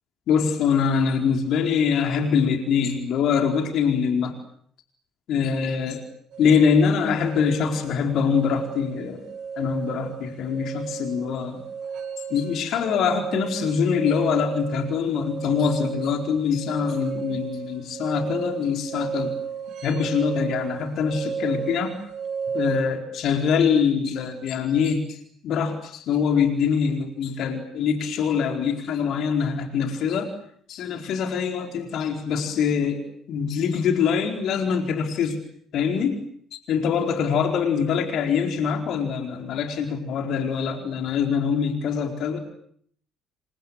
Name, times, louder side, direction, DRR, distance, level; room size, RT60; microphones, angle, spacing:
voice 1, 0.3-4.3 5.3-6.0 6.4-9.2 9.6-11.6 12.3-19.3 19.8-21.9 22.5-30.3 30.7-33.0 33.3-35.4 35.7-36.2 36.5-42.4, left 6 dB, 50° left, 4 dB, 4.5 m, -24 dB
sound 1, 6.3-22.8, right 6 dB, 50° right, 5.9 m, -34 dB
28.5 x 25.5 x 8.1 m, 0.65 s
figure-of-eight pair, 50°, 0 cm